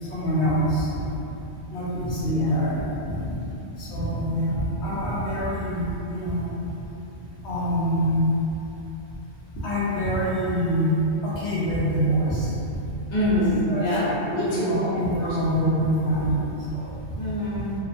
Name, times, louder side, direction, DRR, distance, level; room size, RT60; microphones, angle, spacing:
voice 1, 0.0-0.9 1.7-3.2 3.8-6.5 7.4-8.3 9.6-12.5 13.7-16.4 16.7-17.0, equal, 70° left, -10 dB, 1.0 m, -25 dB
voice 2, 13.1-14.0 14.3-15.4 17.1-17.7, left 1 dB, 50° left, -9 dB, 0.7 m, -25 dB
2.9 x 2.2 x 2.5 m, 3.0 s
omnidirectional pair, 1.2 m